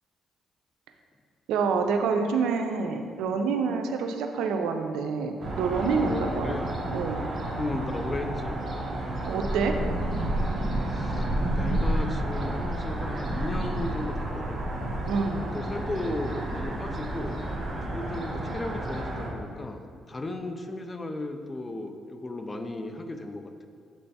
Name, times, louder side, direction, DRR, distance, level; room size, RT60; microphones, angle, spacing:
voice 1, 1.5-6.5 6.9-7.2 9.2-9.7 15.1-15.5, right 5 dB, 90° right, 5 dB, 0.5 m, -27 dB
sound 1, 5.4-19.3, right 1 dB, 40° right, 1.0 m, -30 dB
voice 2, 6.0-6.7 7.6-8.6 10.9-11.3 11.5-14.6 15.4-17.4 17.8-23.7, left 2 dB, 25° left, 6 dB, 0.5 m, -35 dB
7.4 x 3.3 x 4.1 m, 2.2 s
cardioid pair, 90°, 0 cm